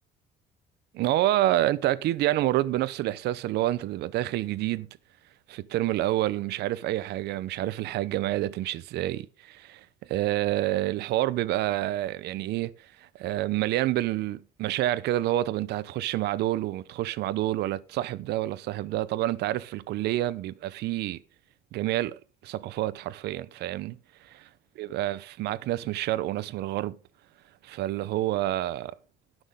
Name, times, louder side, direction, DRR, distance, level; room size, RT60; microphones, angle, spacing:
voice 1, 0.9-4.9 5.5-12.7 13.0-21.2 21.7-24.0 24.8-27.0 27.6-28.9, right 15 dB, 75° right, 0.7 m, -28 dB
18.0 x 6.2 x 3.7 m
cardioid pair, 110°, 17 cm